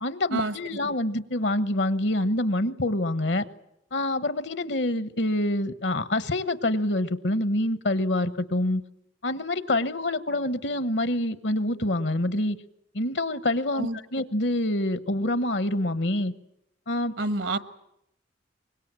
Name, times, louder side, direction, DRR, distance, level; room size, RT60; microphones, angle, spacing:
voice 1, 0.0-3.5 3.9-8.8 9.2-12.6 12.9-16.3 16.9-17.1, left 1 dB, 65° left, 14 dB, 1.2 m, -26 dB
voice 2, 17.2-17.6, right 2 dB, 75° right, 13 dB, 1.4 m, -28 dB
24.5 x 21.5 x 8.9 m, 0.81 s
head